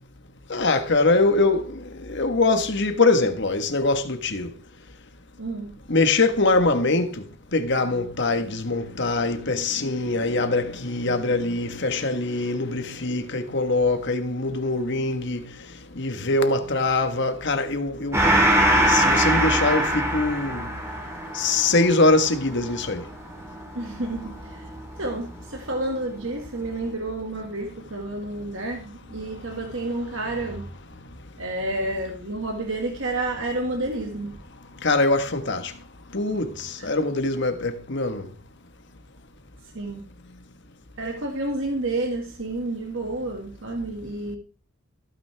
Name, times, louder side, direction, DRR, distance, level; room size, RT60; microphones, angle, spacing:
voice 1, 0.5-4.5 5.9-7.2 7.5-15.4 16.0-18.2 18.9-20.7 21.3-23.0 34.8-35.7 36.1-38.3, left 3 dB, 55° left, 1.5 m, -23 dB
voice 2, 5.4-5.7 23.7-24.7 25.0-30.7 31.4-34.4 36.8-36.9 39.7-40.0 41.0-44.4, right 2 dB, 60° right, 2.0 m, -30 dB
Gong, 18.1-25.1, right 1 dB, 10° right, 2.6 m, -23 dB
15.5 x 9.3 x 3.5 m
head